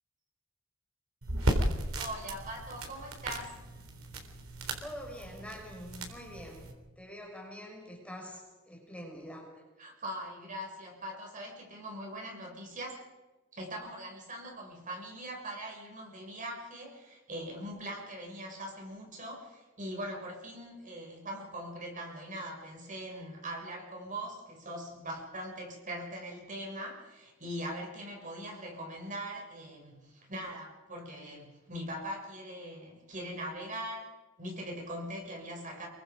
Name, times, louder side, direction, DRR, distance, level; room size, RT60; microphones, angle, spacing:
sound 1, 1.2-6.7, right 1 dB, 90° right, 3.9 m, -35 dB
voice 1, 2.0-3.5 9.8-13.0 13.5-34.1 34.4-35.9, right 1 dB, 40° right, 1 dB, 6.7 m, -41 dB
voice 2, 4.8-9.5, equal, 5° left, -1 dB, 5.6 m, -45 dB
28.0 x 24.0 x 5.3 m, 1.2 s
head